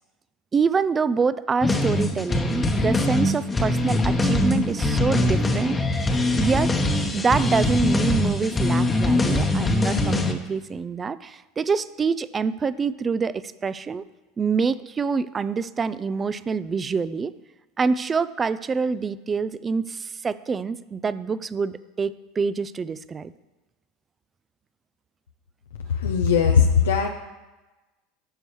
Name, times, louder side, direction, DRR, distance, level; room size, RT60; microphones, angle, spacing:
voice 1, 0.5-5.8 6.3-6.7 7.1-14.0 14.4-17.3 17.8-23.3, right 5 dB, 25° right, 16 dB, 0.4 m, -26 dB
sound 1, 1.6-10.3, left 2 dB, 20° left, 1.0 m, -22 dB
voice 2, 26.0-27.1, left 6 dB, 90° left, 3 dB, 0.5 m, -19 dB
12.0 x 6.8 x 3.2 m, 1.1 s
hypercardioid pair, 85°, 0 cm